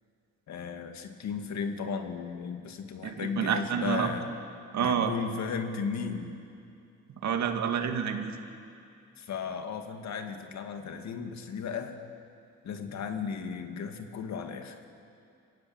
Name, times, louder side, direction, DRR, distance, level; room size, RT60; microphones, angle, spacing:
voice 1, 0.5-4.3 4.8-6.4 9.2-12.0 12.6-14.8, left 6 dB, 65° left, 6 dB, 2.1 m, -35 dB
voice 2, 3.0-4.1 4.7-5.1 7.2-8.4, right 7 dB, 65° right, 5 dB, 2.2 m, -28 dB
25.5 x 15.0 x 8.8 m, 2.5 s
cardioid pair, 90°, 30 cm